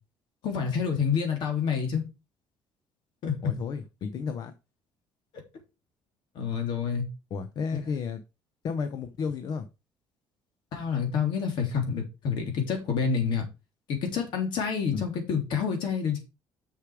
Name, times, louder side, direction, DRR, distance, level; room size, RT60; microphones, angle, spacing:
voice 1, 0.4-2.0 3.2-3.5 6.3-7.1 10.7-13.5 13.9-16.2, left 6 dB, 65° left, 3.4 m, -28 dB
voice 2, 3.4-4.5 7.3-8.2 8.6-9.7 14.9-15.1, left 5 dB, 50° left, 0.9 m, -32 dB
6.8 x 6.5 x 4.9 m
cardioid pair, 150°, 9 cm